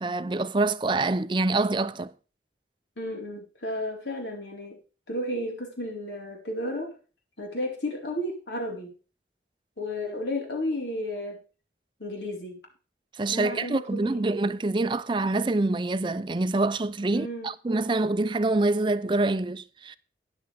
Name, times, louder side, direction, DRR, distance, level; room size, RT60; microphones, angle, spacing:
voice 1, 0.0-2.1 13.2-20.0, right 2 dB, 25° right, 0.4 m, -26 dB
voice 2, 3.0-4.8 5.1-7.0 7.4-8.9 9.8-11.4 12.0-12.6 13.3-14.3 17.1-17.5, left 1 dB, 85° left, 4.3 m, -33 dB
13.0 x 9.9 x 3.4 m
head